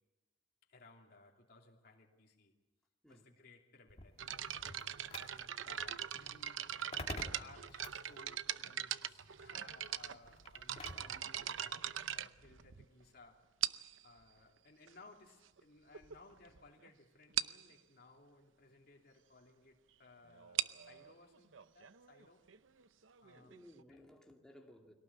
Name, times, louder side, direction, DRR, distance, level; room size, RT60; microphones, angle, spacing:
voice 1, 0.7-2.5 3.1-4.7 5.2-13.5 14.0-22.5 23.2-24.0, left 3 dB, 50° left, 2.9 m, -61 dB
sound 1, 3.9-11.2, left 2 dB, 30° left, 2.1 m, -51 dB
sound 2, 4.2-13.0 13.6-14.0 14.9-15.0 15.6-15.7 15.9-16.2 16.5-16.6 16.8-16.9 17.4-17.7 20.3-23.8, right 10 dB, 85° right, 0.7 m, -41 dB
voice 2, 23.4-24.9, left 1 dB, 5° left, 2.5 m, -59 dB
22.5 x 18.0 x 8.7 m
head